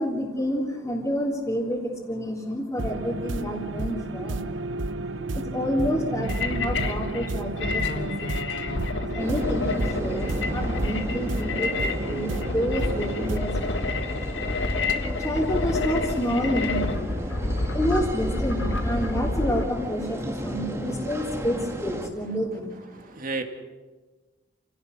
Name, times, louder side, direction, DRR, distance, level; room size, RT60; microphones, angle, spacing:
voice 1, 0.0-4.8 5.3-8.6 8.9-14.5 14.9-23.1, equal, 15° left, -6 dB, 3.3 m, -29 dB
sound 1, 2.8-13.4, right 2 dB, 85° right, 0.8 m, -32 dB
sound 2, 6.2-19.7, left 2 dB, 75° left, 1.7 m, -29 dB
sound 3, 9.2-22.1, equal, 15° right, 2.0 m, -35 dB
voice 2, 17.3-17.7 22.9-23.4, right 3 dB, 50° right, 5 dB, 2.2 m, -34 dB
29.0 x 17.5 x 6.3 m, 1.3 s
head